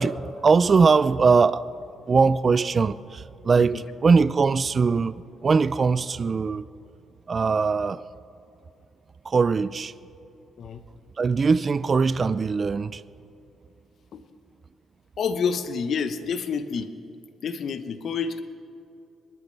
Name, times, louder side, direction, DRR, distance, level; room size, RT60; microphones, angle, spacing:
voice 1, 0.0-1.7 2.1-6.7 7.3-8.0 9.2-9.9 11.2-13.0, right 4 dB, 40° right, 0.4 m, -21 dB
voice 2, 15.2-16.9 17.4-18.4, left 6 dB, 60° left, 1.0 m, -28 dB
22.0 x 12.0 x 3.4 m
cardioid pair, 90°, 0 cm